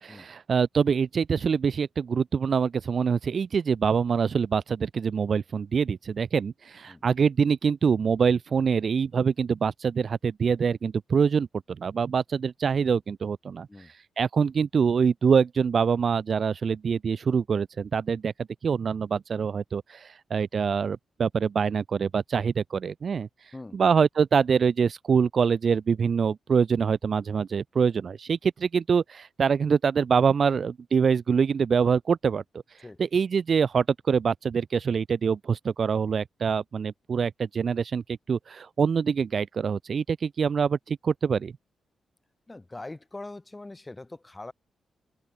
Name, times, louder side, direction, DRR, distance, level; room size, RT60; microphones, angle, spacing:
voice 1, 0.0-13.7 14.2-18.3 18.6-23.3 23.7-32.4 33.0-41.5, right 6 dB, 50° right, 0.4 m, -25 dB
voice 2, 42.5-44.5, left 2 dB, 15° left, 4.0 m, -42 dB
cardioid pair, 100°, 0 cm